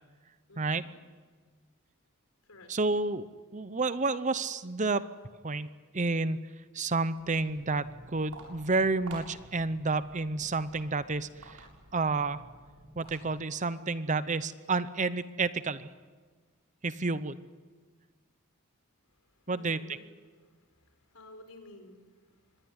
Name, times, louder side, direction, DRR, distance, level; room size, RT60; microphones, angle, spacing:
voice 1, 0.5-0.8 2.4-2.7 19.1-20.0 20.3-22.7, left 2 dB, 75° left, 6 dB, 4.6 m, -54 dB
voice 2, 2.7-3.3 3.5-5.1 5.4-5.7 5.9-6.4 6.7-11.7 11.9-12.4 13.0-15.9 16.8-17.4 19.5-19.8, right 3 dB, 35° right, 14 dB, 0.8 m, -30 dB
Walk footsteps, 7.1-13.6, right 2 dB, 70° right, 7.7 m, -51 dB
25.5 x 20.5 x 9.7 m, 1.5 s
head